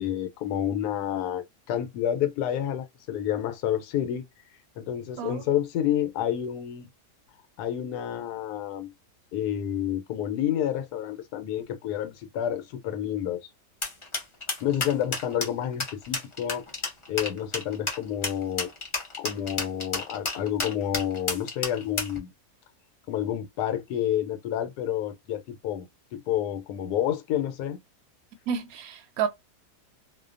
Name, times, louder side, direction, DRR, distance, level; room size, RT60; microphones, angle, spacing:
voice 1, 0.0-4.3 4.8-6.9 7.6-8.9 9.3-13.5 14.6-16.6 17.1-18.7 19.2-22.3 23.1-25.8 26.1-27.8, left 10 dB, 80° left, 1.1 m, -29 dB
sound 1, 13.8-22.2, left 3 dB, 40° left, 0.4 m, -31 dB
voice 2, 28.5-29.3, right 7 dB, 70° right, 1.0 m, -30 dB
2.7 x 2.2 x 2.4 m
omnidirectional pair, 1.7 m